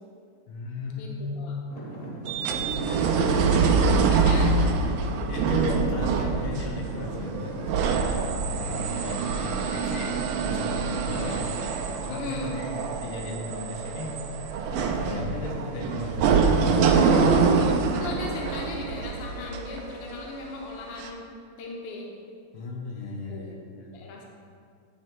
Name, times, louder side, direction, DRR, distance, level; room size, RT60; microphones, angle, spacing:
voice 1, 0.5-1.6 2.7-3.8 5.3-11.5 12.0-14.2 14.6-17.5 22.5-24.0, left 2 dB, 90° left, -1 dB, 1.9 m, -35 dB
voice 2, 1.0-1.5 4.0-4.6 12.1-12.6 17.9-22.1 23.3-23.7 23.9-24.3, left 3 dB, 70° left, -1 dB, 1.5 m, -37 dB
Traffic noise roadway noise / Engine, 1.7-12.5, equal, 40° left, 0.9 m, -39 dB
sound 1, 2.3-20.4 21.0-21.1, right 5 dB, 75° right, 1.2 m, -25 dB
9.4 x 3.3 x 4.5 m, 2.2 s
omnidirectional pair, 2.3 m